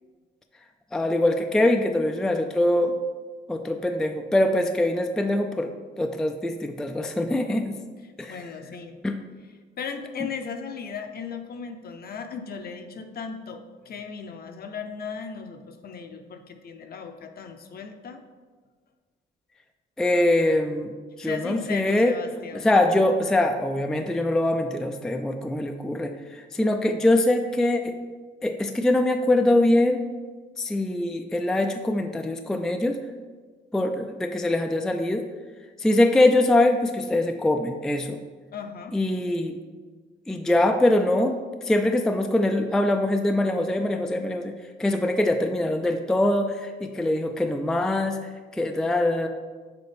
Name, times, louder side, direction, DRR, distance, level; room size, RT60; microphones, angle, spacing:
voice 1, 0.9-2.9 3.5-5.7 6.0-7.8 8.2-8.4 9.0-9.1 20.0-20.9 21.2-22.1 22.5-27.9 28.4-30.0 30.6-33.0 33.7-35.2 35.8-38.2 38.9-39.6 40.3-41.4 41.6-48.2 48.5-49.3, left 1 dB, 5° left, 5 dB, 0.3 m, -23 dB
voice 2, 8.3-9.0 9.8-18.2 21.2-22.7 38.5-39.0, left 6 dB, 50° left, 6 dB, 0.6 m, -36 dB
6.8 x 4.1 x 3.4 m, 1.4 s
cardioid pair, 90°, 20 cm